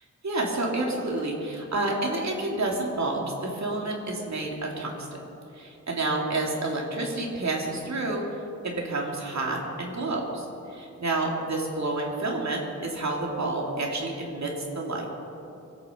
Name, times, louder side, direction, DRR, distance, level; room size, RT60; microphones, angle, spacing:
voice 1, 0.2-5.1 5.6-8.2 8.6-15.1, right 2 dB, 60° right, -1 dB, 3.4 m, -29 dB
24.0 x 9.2 x 5.4 m, 2.7 s
cardioid pair, 65°, 31 cm